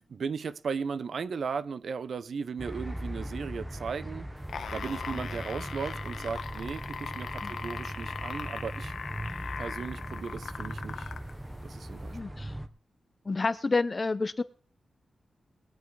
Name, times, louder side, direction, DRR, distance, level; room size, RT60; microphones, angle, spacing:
voice 1, 0.0-4.3 4.7-8.9 9.6-11.1 11.6-12.2, right 5 dB, 60° right, 0.6 m, -36 dB
sound 1, 2.6-12.7, right 1 dB, 10° right, 0.9 m, -39 dB
Predator noise, 4.4-11.3 12.2-12.3, left 6 dB, 80° left, 1.3 m, -39 dB
voice 2, 12.1-12.5 13.3-14.4, left 3 dB, 25° left, 0.7 m, -29 dB
20.5 x 9.4 x 4.7 m
wide cardioid pair, 170°, 0 cm